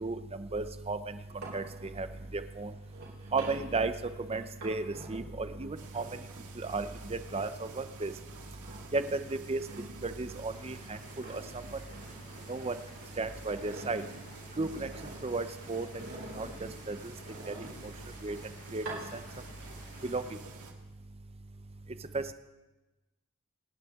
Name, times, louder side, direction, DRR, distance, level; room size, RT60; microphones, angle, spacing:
voice 1, 0.0-1.2 1.5-2.1 2.3-2.7 3.3-6.0 6.6-8.1 8.9-9.6 10.0-11.0 11.3-11.4 12.5-12.8 13.2-14.0 14.6-14.9 15.2-16.0 16.4-17.0 17.5-17.7 18.2-18.4 18.7-18.8 19.1-19.2 20.0-20.2 22.1-22.3, right 3 dB, 25° right, 11 dB, 0.6 m, -34 dB
sound 1, 1.2-7.6 8.0-10.9 11.1-13.0 13.3-15.4 15.9-18.1 18.7-19.7 20.0-20.6, right 2 dB, 60° right, 4.3 m, -48 dB
sound 2, 5.8-20.7, right 3 dB, 85° right, 1.8 m, -50 dB
sound 3, 10.5-20.4, left 3 dB, 25° left, 1.1 m, -56 dB
27.0 x 9.9 x 3.6 m, 1.1 s
head